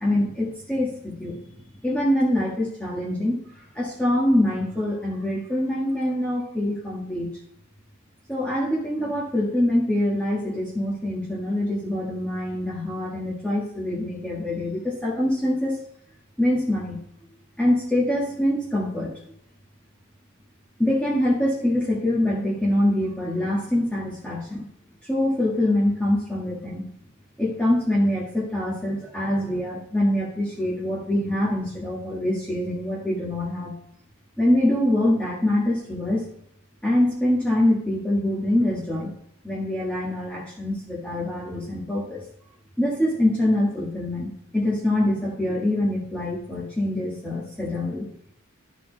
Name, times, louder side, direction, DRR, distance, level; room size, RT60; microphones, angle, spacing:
voice 1, 0.0-1.4 1.8-3.4 3.7-7.3 8.3-15.8 16.4-17.0 17.6-19.2 20.8-24.7 25.1-26.9 27.4-33.8 34.4-36.2 36.8-39.1 39.4-42.2 42.8-48.0, left 1 dB, 5° left, -6 dB, 1.7 m, -24 dB
12.5 x 4.3 x 4.0 m, 0.75 s
head